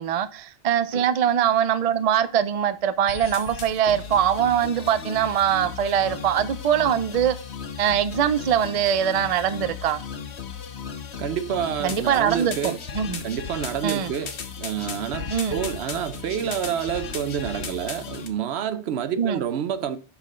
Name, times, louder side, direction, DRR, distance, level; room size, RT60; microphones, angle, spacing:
voice 1, 0.0-7.4 7.8-10.0 11.8-13.2 13.8-14.1 15.3-15.6 19.2-19.4, right 9 dB, 45° right, 0.5 m, -22 dB
sound 1, 3.1-18.3, left 6 dB, 90° left, 1.3 m, -36 dB
voice 2, 11.2-12.8 13.2-20.0, right 9 dB, 75° right, 0.9 m, -28 dB
6.1 x 5.7 x 3.7 m
omnidirectional pair, 1.1 m